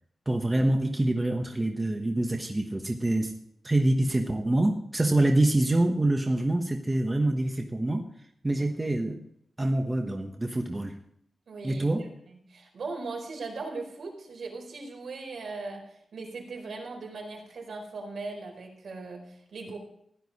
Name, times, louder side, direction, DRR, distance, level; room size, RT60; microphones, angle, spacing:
voice 1, 0.3-3.4 3.6-8.0 8.4-9.2 9.6-10.9 11.6-12.1, right 1 dB, 15° right, 3 dB, 1.1 m, -26 dB
voice 2, 11.5-19.8, right 3 dB, 70° right, 1 dB, 4.7 m, -39 dB
16.0 x 11.5 x 4.2 m, 0.70 s
wide cardioid pair, 140°, 0 cm